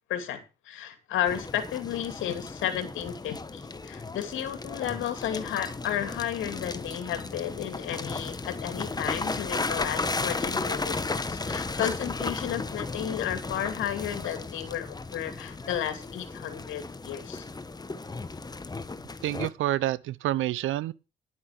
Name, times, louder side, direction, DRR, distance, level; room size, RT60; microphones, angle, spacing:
voice 1, 0.1-17.4, left 10 dB, 85° left, 2.6 m, -33 dB
sound 1, 1.3-19.5, left 3 dB, 20° left, 1.2 m, -35 dB
voice 2, 19.2-20.9, right 14 dB, 80° right, 0.7 m, -28 dB
11.0 x 8.7 x 5.9 m
cardioid pair, 90°, 20 cm